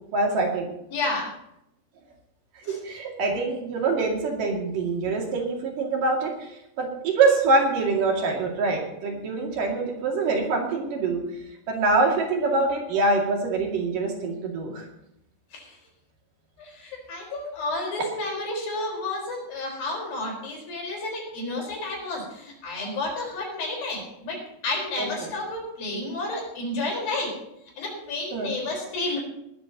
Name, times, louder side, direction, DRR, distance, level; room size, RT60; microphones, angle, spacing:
voice 1, 0.1-0.7 2.6-6.5 6.8-11.2 11.7-14.8 25.0-25.3 28.3-28.5, right 3 dB, 70° right, 0 dB, 3.9 m, -24 dB
voice 2, 0.9-1.3 2.6-2.8 15.5-15.8 16.6-27.3 27.8-29.2, left 2 dB, 75° left, -1 dB, 6.2 m, -31 dB
19.5 x 13.0 x 2.9 m, 0.83 s
omnidirectional pair, 4.1 m